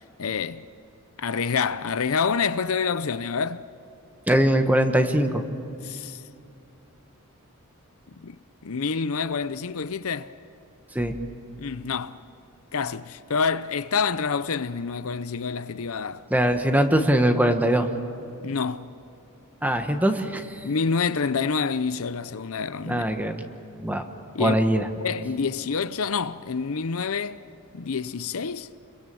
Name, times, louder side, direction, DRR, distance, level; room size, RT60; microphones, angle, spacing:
voice 1, 0.2-0.7 1.2-3.7 5.8-6.2 8.2-8.4 8.6-10.3 11.6-12.2 12.7-16.2 18.4-18.9 20.6-23.0 24.3-24.5 25.0-27.4 27.7-28.7, left 5 dB, 65° left, 0.7 m, -27 dB
voice 2, 4.3-5.4 10.9-11.1 16.3-17.9 19.6-20.6 22.8-23.4 23.8-24.0 24.4-24.9, right 1 dB, 5° right, 1.4 m, -21 dB
30.0 x 23.0 x 7.0 m
head